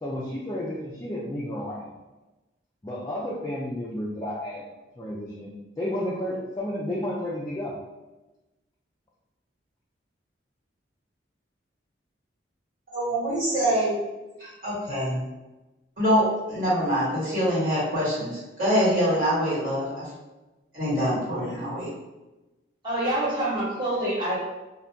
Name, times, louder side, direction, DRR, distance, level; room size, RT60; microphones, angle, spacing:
voice 1, 0.0-2.0 2.8-4.6 5.0-5.5 5.8-7.8, left 1 dB, 20° left, -6 dB, 0.3 m, -32 dB
voice 2, 12.9-13.9 14.4-15.2 16.0-20.1 20.7-21.9, equal, 45° right, -9 dB, 1.5 m, -25 dB
voice 3, 22.8-24.4, right 1 dB, 25° right, -10 dB, 1.3 m, -26 dB
2.6 x 2.2 x 3.4 m, 1.1 s
head